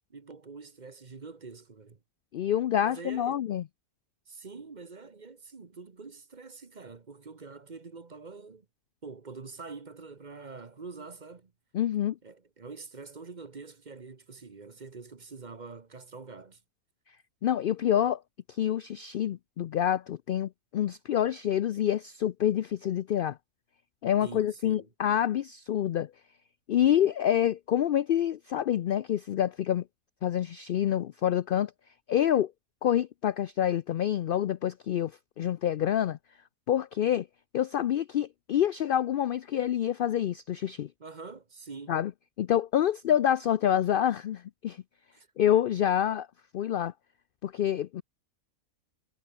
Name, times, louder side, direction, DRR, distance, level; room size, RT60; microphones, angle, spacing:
voice 1, 0.1-2.0 2.8-3.4 4.3-8.7 9.0-11.5 12.2-16.6 24.2-24.9 41.0-42.0 45.1-45.3, right 4 dB, 35° right, 1.2 m, -45 dB
voice 2, 2.3-3.6 11.7-12.2 17.4-18.2 18.5-23.4 24.0-26.1 26.7-29.8 30.2-31.7 32.1-32.5 32.8-35.1 35.4-36.2 36.7-37.3 37.5-40.9 41.9-42.1 42.4-44.8 45.4-46.3 46.5-46.9 47.4-48.0, left 10 dB, 80° left, 0.5 m, -27 dB
omnidirectional pair, 1.5 m